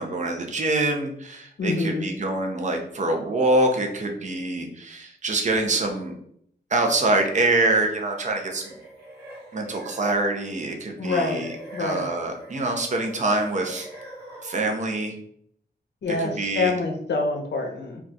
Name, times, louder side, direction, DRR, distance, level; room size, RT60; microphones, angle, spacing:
voice 1, 0.0-6.2 6.7-8.8 9.5-13.9 14.4-15.1 16.1-16.7, right 2 dB, 40° right, 3 dB, 0.5 m, -25 dB
voice 2, 1.6-2.1 11.0-11.4 11.7-12.1 16.0-18.0, left 3 dB, 75° left, 1 dB, 0.5 m, -26 dB
sound 1, 8.3-10.5 11.0-14.9, equal, 65° right, 1.1 m, -42 dB
2.3 x 2.3 x 3.9 m, 0.68 s
wide cardioid pair, 160°, 18 cm